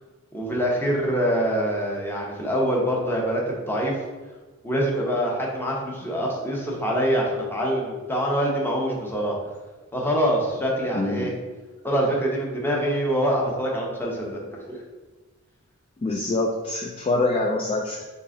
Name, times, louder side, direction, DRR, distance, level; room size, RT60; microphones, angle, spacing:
voice 1, 0.3-4.0 4.6-9.4 9.9-11.3 11.8-14.8, equal, 10° left, -2 dB, 0.8 m, -25 dB
voice 2, 10.9-11.4 16.0-18.0, left 2 dB, 25° left, 0 dB, 0.3 m, -25 dB
3.8 x 3.3 x 3.8 m, 1.3 s
head